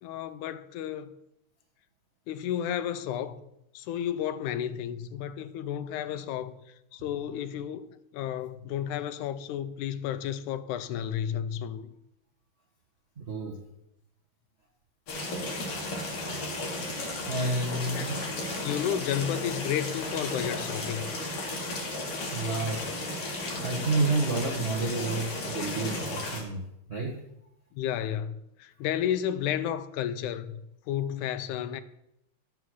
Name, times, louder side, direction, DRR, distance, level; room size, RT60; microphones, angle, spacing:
voice 1, 0.0-1.1 2.3-3.4 3.7-7.9 8.1-11.9 17.9-18.3 18.6-21.1 27.7-31.8, left 10 dB, 85° left, 2.1 m, -32 dB
voice 2, 13.2-13.6 17.2-18.3 22.3-22.9 23.5-26.6 26.9-27.1, right 2 dB, 55° right, 0.7 m, -30 dB
sound 1, 15.1-26.4, left 2 dB, 50° left, 2.8 m, -34 dB
11.5 x 5.7 x 6.2 m
omnidirectional pair, 3.4 m